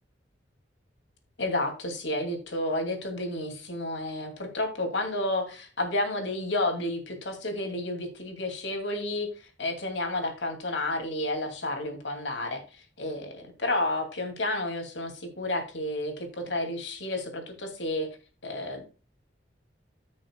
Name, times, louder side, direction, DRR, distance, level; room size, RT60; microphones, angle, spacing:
voice 1, 1.4-9.3 9.6-12.6 13.0-18.1 18.4-18.8, left 1 dB, 85° left, 4 dB, 2.6 m, -31 dB
14.5 x 6.3 x 2.3 m, 0.34 s
head